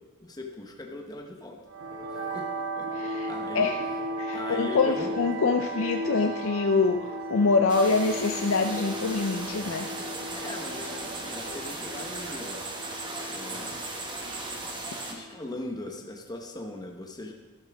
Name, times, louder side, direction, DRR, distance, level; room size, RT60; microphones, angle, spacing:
voice 1, 0.2-1.6 2.1-2.5 2.8-2.9 3.3-3.7 4.3-5.2 10.3-12.6 13.3-13.9 15.1-17.3, left 2 dB, 20° left, 1 dB, 1.0 m, -39 dB
sound 1, 1.7-15.8, right 1 dB, 80° right, 3.0 m, -36 dB
voice 2, 2.9-3.8 4.2-9.9, left 4 dB, 65° left, 5 dB, 0.6 m, -25 dB
sound 2, 7.7-15.1, right 2 dB, 20° right, 1.3 m, -37 dB
13.0 x 12.0 x 3.5 m, 1.2 s
head